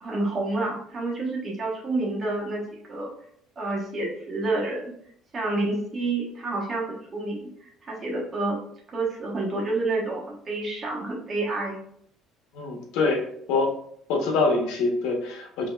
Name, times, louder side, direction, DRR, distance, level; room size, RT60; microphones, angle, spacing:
voice 1, 0.0-3.1 3.6-4.8 5.3-8.6 8.9-11.8, right 2 dB, 25° right, -3 dB, 1.1 m, -29 dB
voice 2, 12.5-13.7 14.1-15.7, left 3 dB, 85° left, 1 dB, 1.1 m, -25 dB
5.1 x 2.9 x 2.4 m, 0.66 s
cardioid pair, 170°, 0 cm